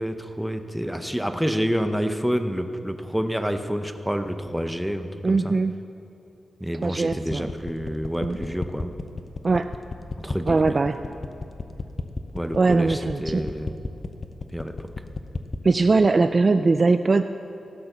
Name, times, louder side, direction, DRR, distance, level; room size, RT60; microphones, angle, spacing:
voice 1, 0.0-5.5 6.6-8.9 10.2-11.1 12.3-13.8 14.5-14.9, equal, ahead, 7 dB, 0.7 m, -28 dB
voice 2, 5.2-5.7 6.8-7.5 8.2-8.4 9.4-9.7 10.5-11.0 12.5-13.5 15.6-17.2, right 3 dB, 35° right, 9 dB, 0.3 m, -20 dB
sound 1, 7.1-15.7, left 3 dB, 35° left, 0.6 m, -32 dB
15.5 x 7.0 x 6.6 m, 2.9 s
wide cardioid pair, 135°, 0 cm